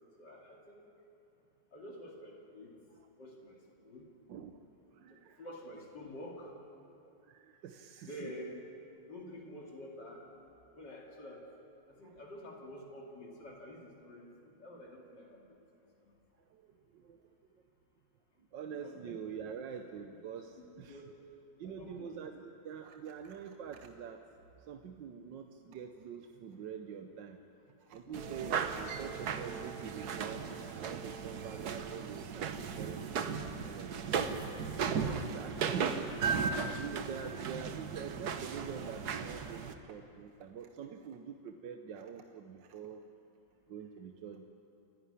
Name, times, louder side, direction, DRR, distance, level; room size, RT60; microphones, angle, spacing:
voice 1, 0.2-0.8 1.7-2.7 3.2-4.1 5.1-6.5 8.1-8.6 9.1-10.2 10.7-11.4 11.9-14.3 14.6-15.4 18.8-19.2 20.3-21.1 21.6-22.2 28.1-28.4, left 1 dB, 70° left, -2 dB, 3.1 m, -49 dB
voice 2, 4.3-5.5 7.0-8.3 12.0-12.2 16.5-17.2 17.6-17.7 18.5-21.0 21.6-24.2 24.6-27.4 27.8-34.3 34.9-36.1 36.5-43.0 43.7-44.5, right 7 dB, 80° right, 6 dB, 1.5 m, -45 dB
sound 1, 28.1-39.7, right 6 dB, 60° right, 1.5 m, -36 dB
29.0 x 11.5 x 9.9 m, 2.8 s
omnidirectional pair, 1.9 m